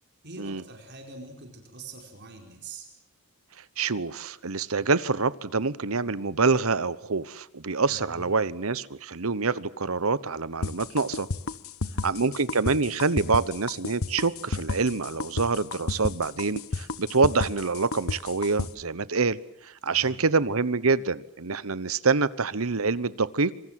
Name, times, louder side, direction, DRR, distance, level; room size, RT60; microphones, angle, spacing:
voice 1, 0.2-2.9 7.9-8.3 11.8-12.3 19.9-20.2, right 3 dB, 55° right, 2 dB, 5.0 m, -44 dB
voice 2, 3.8-11.3 12.0-19.4 19.6-23.5, right 4 dB, 75° right, 17 dB, 1.1 m, -26 dB
sound 1, 10.6-18.7, left 3 dB, 75° left, 1.1 m, -31 dB
26.0 x 25.0 x 7.7 m, 0.70 s
head